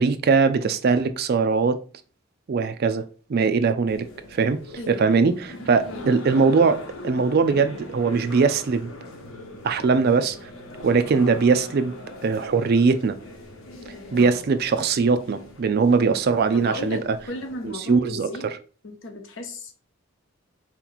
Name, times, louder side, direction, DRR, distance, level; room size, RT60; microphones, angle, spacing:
voice 1, 0.0-1.8 2.5-3.0 3.3-4.6 4.9-8.9 9.6-10.4 10.8-11.9 12.2-13.2 14.1-17.2 17.6-18.6, right 5 dB, 50° right, 0.4 m, -21 dB
sound 1, 3.9-17.8, left 2 dB, 85° left, 1.1 m, -41 dB
voice 2, 4.8-5.3 5.9-6.2 14.2-14.3 16.5-18.5 18.8-19.7, left 1 dB, 65° left, 0.9 m, -35 dB
4.2 x 3.0 x 3.9 m
head